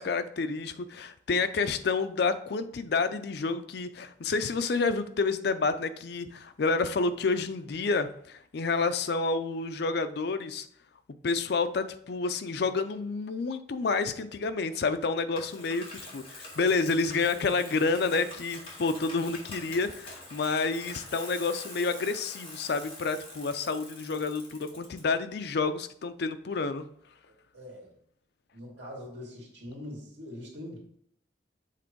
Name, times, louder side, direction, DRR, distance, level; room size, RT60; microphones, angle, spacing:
voice 1, 0.0-10.7 11.2-26.8, left 4 dB, 60° left, 11 dB, 0.5 m, -29 dB
Bicycle, 15.3-25.0, left 2 dB, 30° left, 2.1 m, -45 dB
voice 2, 27.5-27.9 28.5-30.8, left 1 dB, 65° right, -2 dB, 2.3 m, -42 dB
7.5 x 3.5 x 4.5 m, 0.65 s
head